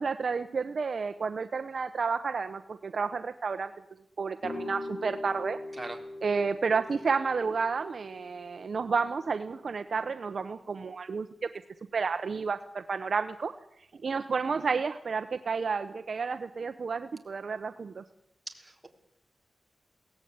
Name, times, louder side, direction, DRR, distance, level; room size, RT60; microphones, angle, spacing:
voice 1, 0.0-3.7 4.2-5.6 6.2-11.5 11.9-13.5 14.0-18.0, right 5 dB, 50° right, 9 dB, 0.9 m, -31 dB
sound 1, 4.4-10.1, left 2 dB, 65° left, 4.2 m, -43 dB
voice 2, 18.5-18.9, right 2 dB, 10° right, 2 dB, 3.7 m, -40 dB
22.5 x 18.0 x 9.6 m, 0.80 s
wide cardioid pair, 155°, 0 cm